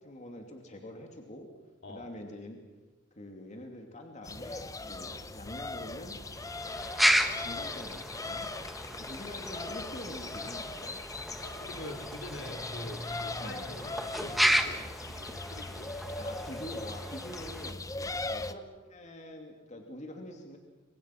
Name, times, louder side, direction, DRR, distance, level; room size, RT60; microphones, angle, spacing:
voice 1, 0.0-1.5 1.9-2.6 3.2-6.2 7.0-8.5 9.0-11.0 13.4-13.6 16.2-17.8 18.2-20.6, left 1 dB, 40° left, 3 dB, 2.7 m, -45 dB
sound 1, 4.2-18.5, left 2 dB, 15° left, 0.9 m, -39 dB
sound 2, 6.2-17.7, equal, ahead, 1.4 m, -33 dB
voice 2, 11.4-15.9 18.0-18.2, left 1 dB, 65° left, 3 dB, 3.4 m, -45 dB
28.5 x 25.5 x 6.0 m, 1.1 s
head